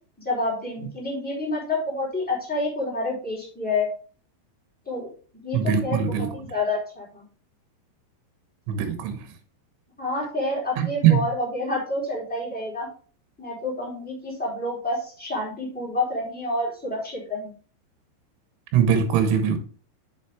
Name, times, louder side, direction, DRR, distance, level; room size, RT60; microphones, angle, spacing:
voice 1, 0.2-3.9 4.8-5.1 5.4-7.2 10.0-12.9 13.4-17.5, left 2 dB, ahead, 2.8 m, -28 dB
voice 2, 5.5-6.3 8.7-9.2 10.8-11.2 18.7-19.6, right 8 dB, 80° right, 3.5 m, -21 dB
7.3 x 7.1 x 3.4 m
omnidirectional pair, 5.6 m